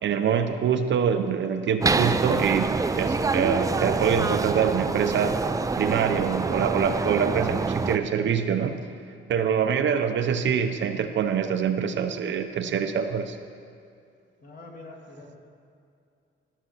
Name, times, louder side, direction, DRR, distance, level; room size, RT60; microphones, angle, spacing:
voice 1, 0.0-5.4 5.8-8.8 9.3-13.4, right 7 dB, 60° right, 8 dB, 0.7 m, -25 dB
sound 1, 1.8-8.0, right 4 dB, 15° right, 0.4 m, -26 dB
voice 2, 14.4-15.4, left 2 dB, 40° left, 0 dB, 2.0 m, -44 dB
13.5 x 6.5 x 5.6 m, 2.5 s
cardioid pair, 100°, 21 cm